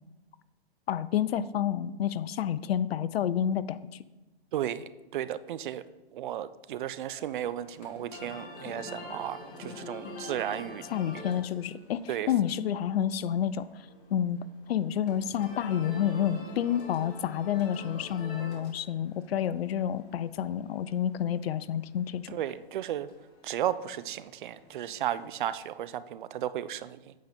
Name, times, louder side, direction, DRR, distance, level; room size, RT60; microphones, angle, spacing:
voice 1, 0.9-3.9 10.9-13.7 14.1-14.4 14.7-22.3, left 10 dB, 75° left, 16 dB, 0.5 m, -29 dB
voice 2, 4.5-5.8 6.1-10.8 12.1-12.3 22.3-23.1 23.4-27.2, right 11 dB, 55° right, 15 dB, 0.4 m, -34 dB
sound 1, 7.1-25.5, left 2 dB, 40° left, 1.9 m, -47 dB
8.4 x 5.0 x 4.3 m, 1.1 s
hypercardioid pair, 145°, 31 cm